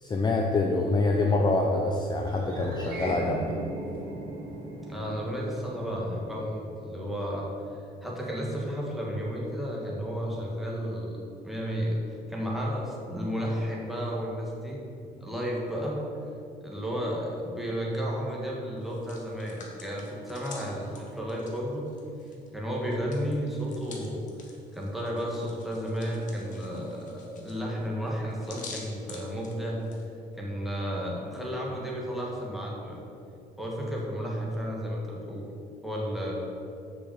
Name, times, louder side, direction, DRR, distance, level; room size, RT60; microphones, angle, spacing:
voice 1, 0.0-3.6, left 2 dB, 25° left, 1 dB, 0.7 m, -26 dB
sound 1, 2.2-6.8, right 2 dB, 65° right, 1.9 m, -38 dB
voice 2, 4.9-7.5 8.0-12.0 12.3-14.8 15.2-16.0 16.6-21.9 22.5-24.2 24.7-29.8 30.4-33.0 33.6-35.5 35.8-36.3, equal, ahead, -4 dB, 2.1 m, -32 dB
Hands, 18.8-22.5 22.8-30.0, left 4 dB, 50° left, 1.6 m, -48 dB
6.3 x 5.9 x 7.3 m, 2.6 s
cardioid pair, 110°, 17 cm